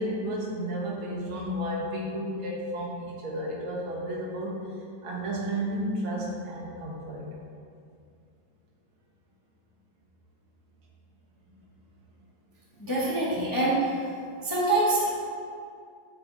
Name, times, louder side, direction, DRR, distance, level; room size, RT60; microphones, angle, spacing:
voice 1, 0.0-4.6 5.0-7.3, equal, 85° right, -4 dB, 2.0 m, -32 dB
voice 2, 12.8-13.9 14.4-15.1, right 2 dB, 20° left, -8 dB, 0.6 m, -25 dB
7.6 x 3.5 x 4.0 m, 2.3 s
omnidirectional pair, 2.2 m